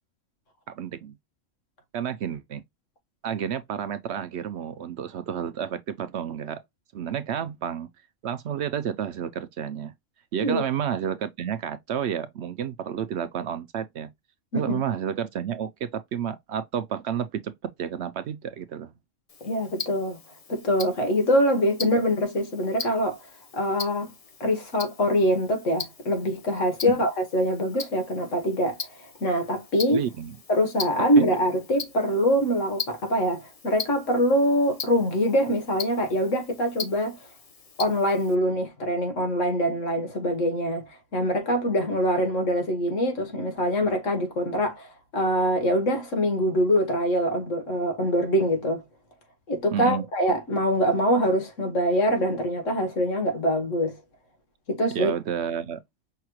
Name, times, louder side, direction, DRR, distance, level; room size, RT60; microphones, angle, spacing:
voice 1, 0.7-1.1 1.9-2.6 3.2-6.6 6.9-7.9 8.2-9.9 10.3-14.1 14.5-18.9 26.9-27.0 29.9-30.4 31.0-31.3 49.7-50.0 54.9-55.8, right 8 dB, 65° right, 0.8 m, -30 dB
Tick-tock, 19.3-38.3, left 5 dB, 35° left, 0.7 m, -40 dB
voice 2, 19.4-20.2 20.5-23.2 23.5-24.1 24.4-30.0 30.5-37.2 37.8-48.8 49.5-54.0 54.7-55.1, equal, 70° left, 1.7 m, -24 dB
5.7 x 3.0 x 2.2 m
omnidirectional pair, 1.3 m